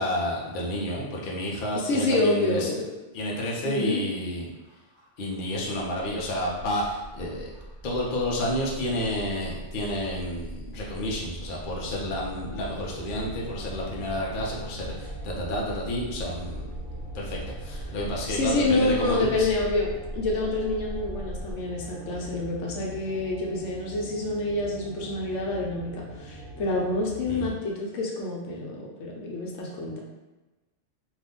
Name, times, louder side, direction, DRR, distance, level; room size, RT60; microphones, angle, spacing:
voice 1, 0.0-2.7 3.1-4.5 5.2-7.5 7.8-16.6 17.1-19.5 27.3-27.5, left 1 dB, 50° left, -3 dB, 0.7 m, -30 dB
voice 2, 1.7-2.9 3.6-4.0 17.8-18.0 18.3-30.0, left 2 dB, 90° left, -2 dB, 1.0 m, -27 dB
sound 1, 4.6-21.5, right 1 dB, 5° left, 1.3 m, -40 dB
sound 2, 11.7-27.5, right 1 dB, 85° right, 0.9 m, -43 dB
2.7 x 2.5 x 3.6 m, 1.1 s
omnidirectional pair, 1.3 m